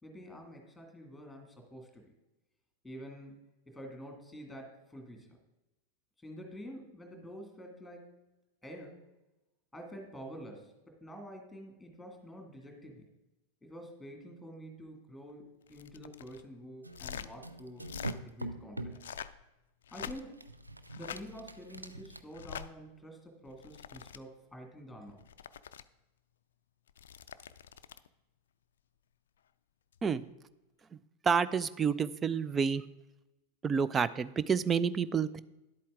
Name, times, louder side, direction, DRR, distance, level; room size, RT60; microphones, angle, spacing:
voice 1, 0.0-2.1 2.8-3.3 3.7-5.4 6.2-8.2 8.6-9.1 9.7-13.1 13.6-18.0 18.3-19.0 19.9-20.4 21.0-25.2, equal, 5° left, 3 dB, 2.2 m, -48 dB
sound 1, 15.7-16.4 16.9-17.3 17.8-18.2 18.9-19.4 19.8-20.4 20.9-21.2 22.3-22.7 23.5-24.2 25.1-25.8 26.9-28.1 29.9-30.1, left 9 dB, 60° left, 0.4 m, -45 dB
sound 2, 16.8-19.1 20.1-22.2, right 2 dB, 85° right, 0.5 m, -43 dB
voice 2, 31.2-32.8 33.6-35.4, right 6 dB, 20° right, 16 dB, 0.4 m, -29 dB
11.0 x 8.3 x 3.7 m, 0.97 s
figure-of-eight pair, 90°, 0 cm